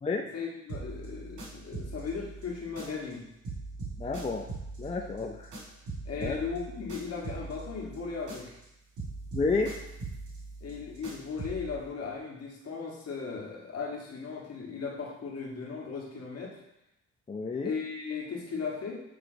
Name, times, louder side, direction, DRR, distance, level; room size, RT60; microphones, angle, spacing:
voice 1, 0.3-3.2 6.0-8.5 10.6-16.6 17.6-19.0, left 5 dB, 55° left, -2 dB, 1.6 m, -37 dB
sound 1, 0.7-3.2 3.4-8.7 9.0-11.8, right 3 dB, 75° right, 2.1 m, -41 dB
voice 2, 4.0-4.4 4.8-5.5 6.2-6.4 9.3-9.7 17.3-17.7, left 4 dB, 20° left, 2 dB, 0.5 m, -30 dB
8.1 x 3.3 x 3.9 m, 0.86 s
cardioid pair, 90°, 30 cm